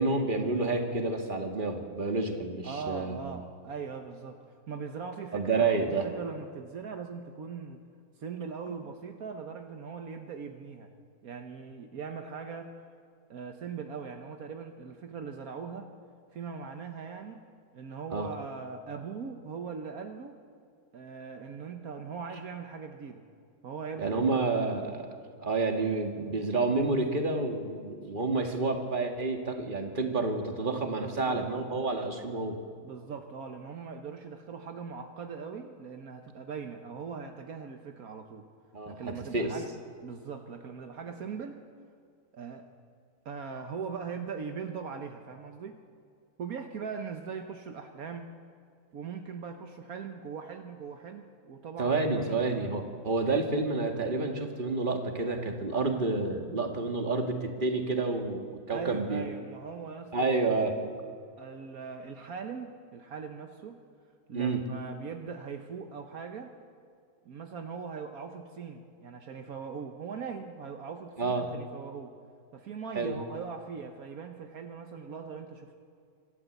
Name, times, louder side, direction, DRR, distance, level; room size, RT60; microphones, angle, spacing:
voice 1, 0.0-3.2 5.3-6.1 18.1-18.3 24.0-25.1 25.4-32.6 38.7-39.5 51.8-59.2 60.1-60.8 64.3-64.6 71.2-71.5 73.0-73.1, right 3 dB, 35° right, 3 dB, 2.1 m, -29 dB
voice 2, 2.6-7.8 8.2-10.9 11.2-12.7 13.3-15.9 16.3-17.5 17.7-20.4 20.9-23.2 23.6-24.4 31.0-31.4 32.8-38.5 38.9-39.7 40.0-41.6 42.3-42.7 43.2-45.8 46.4-48.3 48.9-52.8 53.2-53.4 58.7-60.4 61.4-63.8 64.3-66.6 67.2-72.1 72.5-75.8, right 5 dB, 70° right, 5 dB, 1.5 m, -40 dB
26.0 x 12.5 x 8.1 m, 2.4 s
omnidirectional pair, 1.6 m